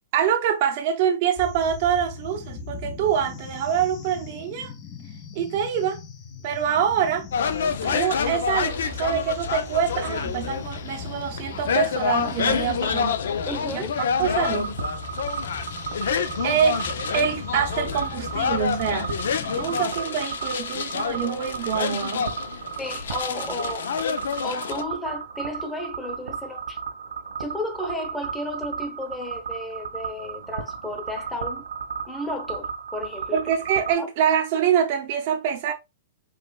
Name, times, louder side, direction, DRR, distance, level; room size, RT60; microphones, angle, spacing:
voice 1, 0.1-4.7 5.3-6.0 6.4-7.3 7.8-13.2 13.7-13.8 14.2-14.8 16.4-16.8 17.1-19.1 19.6-22.4 33.3-35.7, right 8 dB, 50° right, 0.7 m, -25 dB
sound 1, 1.4-19.9, left 4 dB, 30° left, 0.8 m, -38 dB
sound 2, 7.3-24.8, left 6 dB, 80° left, 0.6 m, -28 dB
voice 2, 13.4-14.0 22.8-23.9 24.4-26.8 27.4-31.7 32.1-33.4 34.0-34.1, left 1 dB, 10° left, 1.0 m, -33 dB
sound 3, 14.2-33.9, right 6 dB, 85° right, 1.5 m, -35 dB
4.9 x 3.3 x 2.3 m
hypercardioid pair, 135°, 0 cm